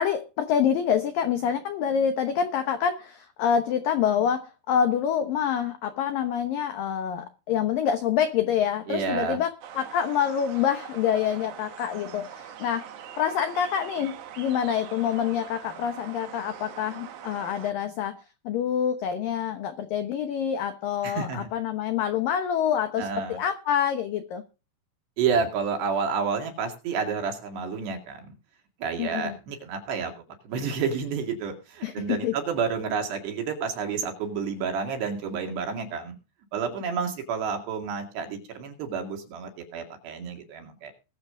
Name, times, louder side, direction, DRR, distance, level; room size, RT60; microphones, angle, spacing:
voice 1, 0.0-12.9 13.2-24.4 29.0-29.4 31.8-32.3, left 8 dB, 90° left, 1.9 m, -26 dB
voice 2, 8.9-9.4 21.0-21.5 23.0-23.4 25.2-28.3 28.8-30.1 30.4-36.2 36.5-40.9, right 6 dB, 60° right, 4.1 m, -30 dB
sound 1, 9.6-17.7, right 9 dB, 90° right, 1.7 m, -43 dB
21.5 x 7.7 x 3.8 m
omnidirectional pair, 5.7 m